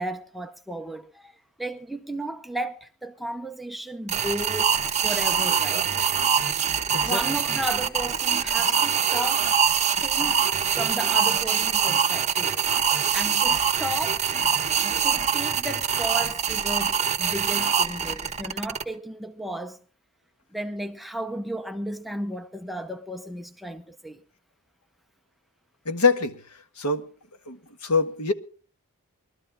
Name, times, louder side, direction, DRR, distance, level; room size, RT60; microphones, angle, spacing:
voice 1, 0.0-1.3 1.6-5.9 7.0-9.5 10.0-10.4 10.7-12.7 13.1-14.2 15.0-19.8 20.5-24.2, right 1 dB, ahead, 0.7 m, -34 dB
sound 1, 4.1-18.8, right 7 dB, 30° right, 1.4 m, -24 dB
voice 2, 25.9-26.3 26.8-27.0 27.5-27.6 27.8-28.3, left 4 dB, 85° left, 1.5 m, -23 dB
21.5 x 13.0 x 3.6 m
head